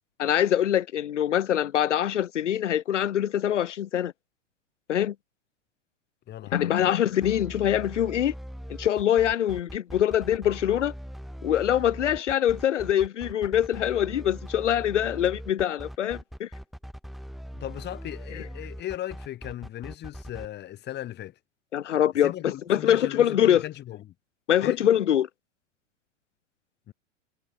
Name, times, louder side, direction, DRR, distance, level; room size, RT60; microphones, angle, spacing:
voice 1, 0.2-4.1 4.9-5.1 6.5-8.3 8.8-10.9 11.4-16.5 18.3-18.4 21.7-23.6 24.5-25.3, left 10 dB, 70° left, 1.0 m, -24 dB
voice 2, 6.3-7.1 17.5-21.3 22.2-24.1 24.6-24.8 26.9-27.0, left 13 dB, 25° left, 2.1 m, -37 dB
sound 1, 7.2-20.5, equal, ahead, 5.2 m, -40 dB
figure-of-eight pair, 100°, 37 cm